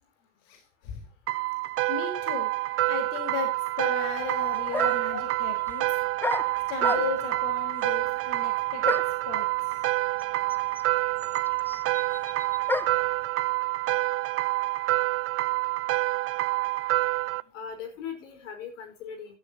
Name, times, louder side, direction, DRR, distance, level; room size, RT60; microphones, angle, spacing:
sound 1, 1.3-17.4, right 19 dB, 40° right, 0.6 m, -27 dB
voice 1, 1.9-2.6 2.9-3.5 3.8-5.8 6.7-8.9 9.3-9.5, left 6 dB, 60° left, 6 dB, 4.3 m, -35 dB
sound 2, 4.2-4.3 4.7-5.2 6.2-7.4 8.9-9.3 10.2-10.3 10.5-13.1, left 2 dB, 5° left, 0.7 m, -32 dB
voice 2, 4.4-5.3 7.8-8.2 17.5-19.4, left 6 dB, 80° left, 6 dB, 5.0 m, -40 dB
14.0 x 13.0 x 2.9 m, 0.29 s
hypercardioid pair, 95°, 37 cm